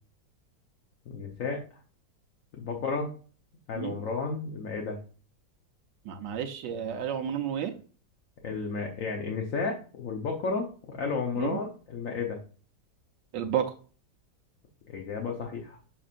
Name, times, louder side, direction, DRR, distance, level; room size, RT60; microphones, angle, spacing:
voice 1, 1.1-1.6 2.5-3.1 3.7-5.0 8.4-12.4 14.9-15.8, left 4 dB, 55° left, 1 dB, 1.2 m, -32 dB
voice 2, 6.1-7.8 11.4-11.6 13.3-13.7, right 9 dB, 80° right, 4 dB, 1.4 m, -31 dB
7.2 x 5.4 x 2.5 m, 0.39 s
omnidirectional pair, 1.9 m